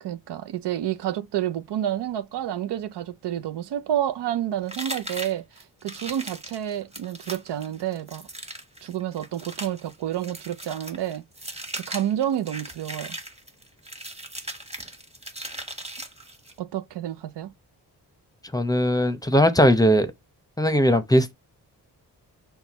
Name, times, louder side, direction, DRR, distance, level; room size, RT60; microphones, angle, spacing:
voice 1, 0.0-5.4 5.8-8.2 8.8-11.2 11.7-13.2 16.6-17.5, right 11 dB, 75° right, 0.6 m, -29 dB
sound 1, 4.7-16.6, right 1 dB, 15° right, 1.2 m, -38 dB
voice 2, 18.5-20.1 20.6-21.3, equal, 10° left, 0.7 m, -19 dB
5.7 x 2.3 x 4.0 m
supercardioid pair, 45°, 42 cm